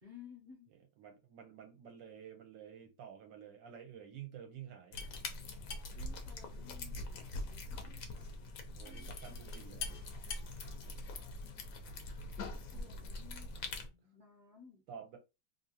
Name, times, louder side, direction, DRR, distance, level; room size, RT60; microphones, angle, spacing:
voice 1, 0.0-0.7 5.9-7.7 8.8-9.8 12.4-14.8, left 6 dB, 35° right, 0.8 m, -57 dB
voice 2, 0.7-5.0 8.8-9.9 14.9-15.2, right 8 dB, 70° right, 1.3 m, -51 dB
sound 1, 4.9-13.9, left 2 dB, 70° left, 0.8 m, -43 dB
3.4 x 2.7 x 2.7 m
omnidirectional pair, 2.2 m